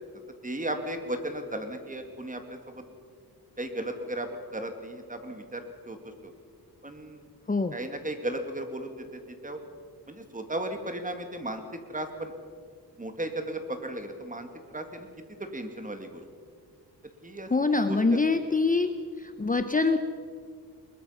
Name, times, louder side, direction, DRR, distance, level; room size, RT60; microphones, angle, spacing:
voice 1, 0.4-2.9 3.6-6.0 6.2-6.3 6.8-7.2 7.7-9.6 10.1-12.3 13.0-15.1 15.4-16.2 17.2-17.5 17.9-18.0, right 1 dB, 20° right, 6 dB, 2.2 m, -35 dB
voice 2, 17.5-18.9 19.2-20.0, left 3 dB, 20° left, 8 dB, 0.8 m, -24 dB
22.0 x 21.5 x 5.7 m, 2.1 s
wide cardioid pair, 120°, 38 cm